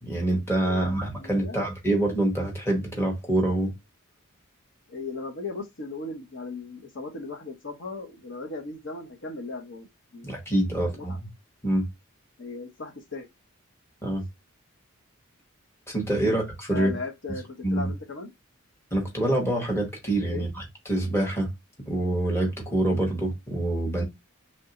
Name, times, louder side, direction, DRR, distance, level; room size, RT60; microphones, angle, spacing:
voice 1, 0.0-3.7 10.2-11.1 11.6-11.8 14.0-14.2 15.9-17.0 17.6-17.9 18.9-20.5 20.9-21.5 21.9-24.0, right 1 dB, 10° left, 1.0 m, -26 dB
voice 2, 0.7-1.7 4.9-9.9 10.1-10.3 10.8-11.2 12.4-13.3 16.2-16.3 16.7-18.3 20.3-20.5, left 3 dB, 55° left, 0.9 m, -37 dB
3.3 x 2.6 x 3.8 m
head